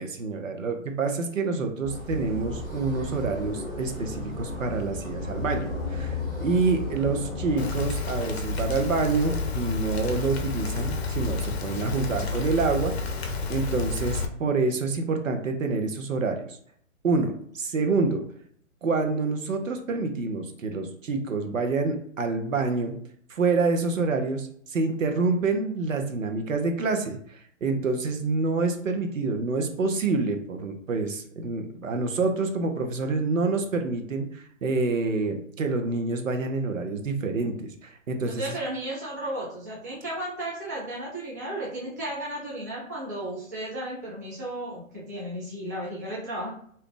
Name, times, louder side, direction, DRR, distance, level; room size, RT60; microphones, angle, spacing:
voice 1, 0.0-13.2 13.5-16.4 17.0-18.2 18.8-22.9 23.3-38.5, right 3 dB, 70° right, 5 dB, 0.9 m, -27 dB
sound 1, 1.8-7.7, left 2 dB, 10° left, 1.2 m, -34 dB
Rain, 7.6-14.3, left 3 dB, 50° left, 0.6 m, -30 dB
voice 2, 38.2-46.5, right 1 dB, 15° right, -7 dB, 0.3 m, -34 dB
2.7 x 2.3 x 3.7 m, 0.62 s
figure-of-eight pair, 130°, 40 cm